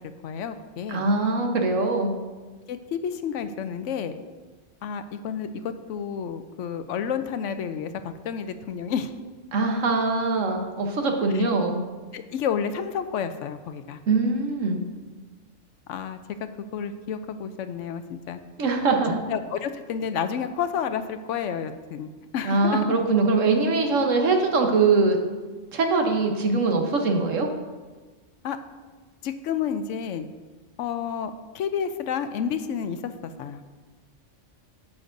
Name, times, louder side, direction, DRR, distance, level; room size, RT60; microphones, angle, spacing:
voice 1, 0.2-1.0 2.7-4.2 4.8-9.1 11.3-11.4 12.1-14.0 15.9-16.2 16.7-18.4 19.1-22.1 22.3-23.0 28.4-28.6 29.2-30.3 30.8-33.6, left 7 dB, 80° left, 10 dB, 0.9 m, -30 dB
voice 2, 0.9-2.1 9.5-11.8 14.1-14.8 18.6-19.2 22.4-25.2 25.7-27.5, right 3 dB, 90° right, 3 dB, 1.4 m, -22 dB
11.0 x 8.7 x 2.6 m, 1.3 s
omnidirectional pair, 1.3 m